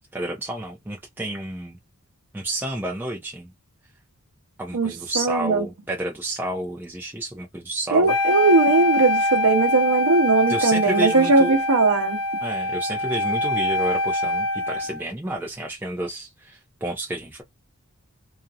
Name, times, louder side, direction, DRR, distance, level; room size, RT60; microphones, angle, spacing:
voice 1, 0.1-1.8 2.3-3.5 4.6-8.1 10.5-11.6 12.4-17.4, right 1 dB, 10° right, 0.5 m, -30 dB
voice 2, 4.7-5.6 7.9-12.2, right 3 dB, 80° right, 0.7 m, -19 dB
Wind instrument woodwind instrument, 8.1-15.0, left 1 dB, 80° left, 0.8 m, -24 dB
2.4 x 2.0 x 2.7 m
head